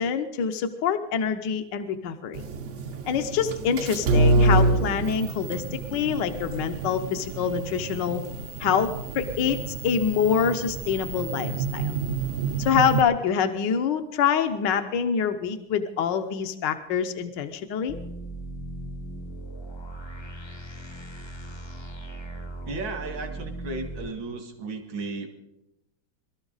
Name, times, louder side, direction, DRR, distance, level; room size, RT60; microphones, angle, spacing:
voice 1, 0.0-2.4 3.1-5.6 5.9-8.2 8.6-9.6 9.8-11.8 12.6-17.9, left 7 dB, 70° left, 7 dB, 1.4 m, -25 dB
sound 1, 2.3-13.0, right 3 dB, 55° right, 0.8 m, -27 dB
sound 2, 17.9-24.1, right 1 dB, 25° left, 0.6 m, -38 dB
voice 2, 22.6-25.3, right 3 dB, 75° right, 4 dB, 2.6 m, -34 dB
24.0 x 13.0 x 4.0 m, 0.90 s
omnidirectional pair, 2.1 m